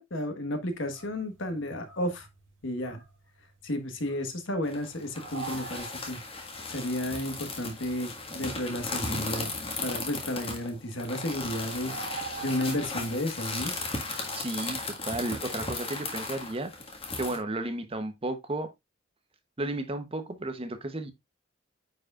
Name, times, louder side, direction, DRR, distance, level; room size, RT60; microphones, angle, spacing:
voice 1, 0.0-2.3 2.6-3.0 3.6-6.2 6.7-9.5 9.8-13.7, left 1 dB, 70° left, 1.4 m, -32 dB
sound 1, 0.7-10.0 10.4-15.8, right 5 dB, 60° right, 3.3 m, -46 dB
sound 2, 4.7-17.4, left 3 dB, 30° left, 1.7 m, -36 dB
voice 2, 14.3-16.7 17.1-18.7 19.6-21.1, right 2 dB, 30° right, 0.9 m, -33 dB
9.4 x 4.8 x 2.4 m
head